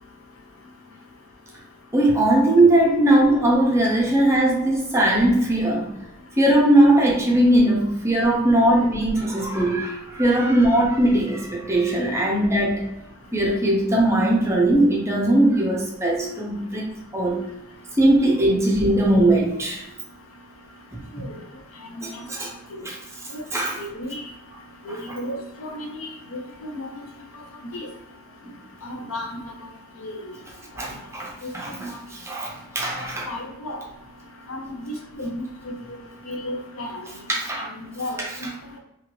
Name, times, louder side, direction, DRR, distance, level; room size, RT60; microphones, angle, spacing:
voice 1, 1.9-5.9 6.4-12.9 13.3-17.4 18.0-19.8 20.9-21.0 22.0-22.5 22.8-23.0 23.5-23.8 30.8-31.9 32.2-33.3 37.3-37.7 38.2-38.3, right 1 dB, 15° right, -3 dB, 0.6 m, -19 dB
voice 2, 21.9-22.2 22.8-22.9 23.3-23.4 23.8-24.2 24.9-26.9 27.7-27.9 28.8-29.3 30.0-30.2 31.4-31.5 31.8-32.0 33.2-33.8 34.5-36.0 36.3-37.0 38.0-38.5, left 1 dB, 70° left, 2 dB, 0.7 m, -33 dB
2.9 x 2.6 x 3.0 m, 0.86 s
head